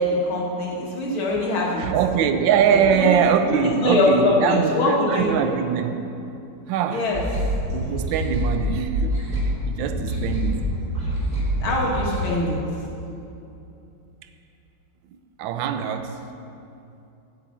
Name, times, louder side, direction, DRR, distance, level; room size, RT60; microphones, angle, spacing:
voice 1, 0.0-1.9 2.7-5.5 6.9-7.2 11.6-12.6, left 2 dB, 85° left, -3 dB, 2.6 m, -23 dB
voice 2, 1.8-6.0 6.7-7.1 7.7-10.8 11.6-11.8 15.4-16.2, right 7 dB, 75° right, 8 dB, 1.4 m, -23 dB
sound 1, 7.1-12.3, equal, 45° right, 3.3 m, -26 dB
9.1 x 6.9 x 8.5 m, 2.8 s
omnidirectional pair, 2.2 m